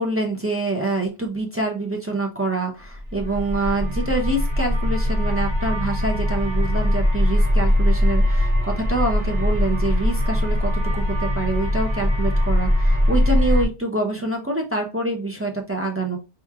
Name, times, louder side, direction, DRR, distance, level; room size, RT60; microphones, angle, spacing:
voice 1, 0.0-16.2, right 2 dB, 25° right, 0 dB, 0.3 m, -26 dB
sound 1, 3.0-13.6, left 1 dB, 65° right, 1.1 m, -21 dB
4.6 x 3.0 x 2.3 m, 0.29 s
omnidirectional pair, 1.2 m